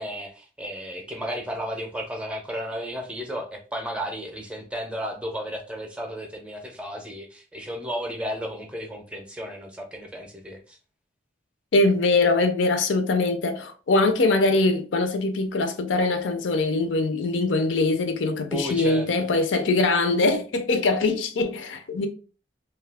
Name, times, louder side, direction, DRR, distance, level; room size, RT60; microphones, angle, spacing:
voice 1, 0.0-10.8 18.5-19.1, equal, 5° right, 0.5 m, -33 dB
voice 2, 11.7-22.1, left 3 dB, 85° left, 0.5 m, -22 dB
2.6 x 2.3 x 3.3 m
head